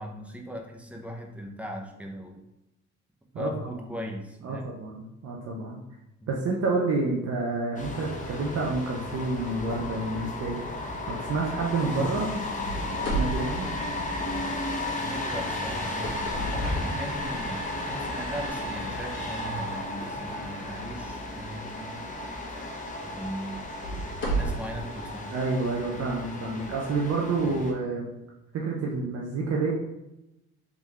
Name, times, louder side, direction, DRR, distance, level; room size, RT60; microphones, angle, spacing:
voice 1, 0.0-2.4 3.3-4.7 6.2-6.3 14.9-22.0 23.0-23.7 24.3-25.3, equal, 5° right, 1 dB, 0.7 m, -38 dB
voice 2, 4.4-5.8 6.3-10.7 11.1-12.3 12.9-13.7 25.3-28.1 28.5-29.7, right 3 dB, 55° right, -2 dB, 0.7 m, -29 dB
sound 1, 7.8-27.7, left 2 dB, 25° left, 0.9 m, -34 dB
sound 2, 7.9-18.1, left 2 dB, 90° left, 0.9 m, -46 dB
sound 3, 12.6-14.6 15.7-17.7 18.3-18.5 19.1-19.2 21.9-22.0 22.6-22.7 23.5-24.8, right 2 dB, 40° left, 1.4 m, -32 dB
3.7 x 3.4 x 3.1 m, 0.92 s
cardioid pair, 90°, 30 cm